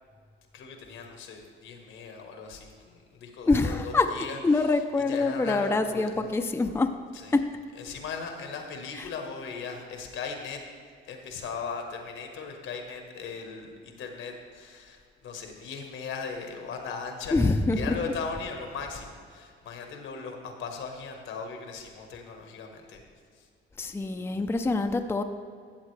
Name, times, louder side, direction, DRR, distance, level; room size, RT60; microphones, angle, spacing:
voice 1, 0.5-6.2 7.1-7.4 7.7-10.6 11.1-23.0 23.3-23.5, left 5 dB, 80° left, 4 dB, 1.3 m, -38 dB
voice 2, 3.5-4.1 4.4-6.9 7.3-7.4 17.3-17.8 23.8-25.2, left 3 dB, 10° left, 6 dB, 0.5 m, -25 dB
13.0 x 7.4 x 3.3 m, 2.2 s
cardioid pair, 90°, 20 cm